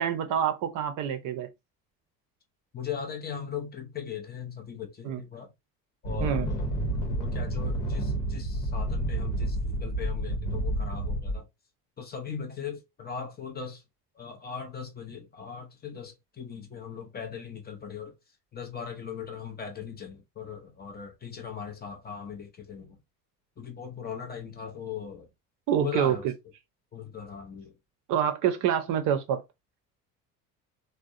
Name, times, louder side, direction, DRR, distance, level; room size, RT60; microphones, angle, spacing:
voice 1, 0.0-1.5 5.0-5.2 6.2-6.5 25.7-26.3 28.1-29.4, right 9 dB, 40° right, 0.6 m, -27 dB
voice 2, 2.7-5.5 6.0-6.7 7.1-11.5 12.0-13.8 14.1-18.1 18.5-23.0 23.6-25.3 25.8-26.3 26.9-27.7, left 7 dB, 20° left, 0.6 m, -39 dB
sound 1, 6.0-11.4, right 1 dB, 70° left, 1.0 m, -30 dB
3.4 x 2.2 x 2.5 m
figure-of-eight pair, 60°, 48 cm